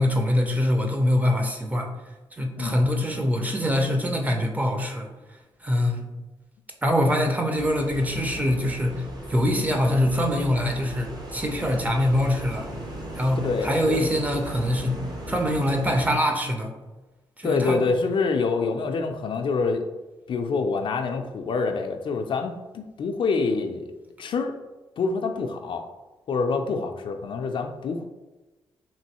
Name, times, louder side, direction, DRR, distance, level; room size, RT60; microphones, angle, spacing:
voice 1, 0.0-1.9 2.4-5.1 5.6-6.1 6.8-9.0 9.3-12.7 13.2-15.0 15.3-16.7 17.4-17.8, left 1 dB, 15° right, 3 dB, 0.6 m, -24 dB
sound 1, 7.5-16.2, right 1 dB, 45° right, 0.9 m, -37 dB
voice 2, 13.4-14.1 17.4-19.8 20.3-23.9 24.2-24.5 25.0-25.8 26.3-28.0, left 4 dB, 55° left, 5 dB, 0.3 m, -26 dB
3.0 x 2.6 x 2.9 m, 1.1 s
cardioid pair, 65°, 10 cm